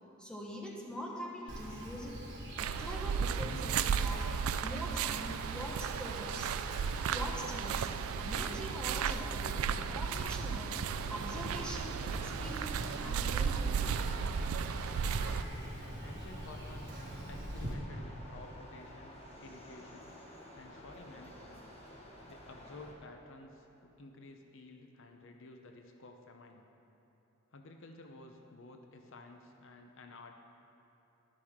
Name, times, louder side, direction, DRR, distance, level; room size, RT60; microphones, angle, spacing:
voice 1, 0.2-2.2 2.6-4.3 4.6-6.5 7.1-7.9 8.1-14.0, equal, 5° left, -2 dB, 1.2 m, -43 dB
Insect, 1.5-17.7, equal, 55° right, 1.7 m, -44 dB
sound 1, 2.6-15.4, right 7 dB, 75° right, 0.3 m, -35 dB
sound 2, 10.7-22.9, equal, 30° left, 1.4 m, -51 dB
voice 2, 16.0-17.0 17.3-20.1 20.5-21.6 22.3-26.7 27.5-30.4, left 2 dB, 60° left, 4 dB, 0.7 m, -52 dB
11.5 x 11.5 x 3.6 m, 2.9 s
head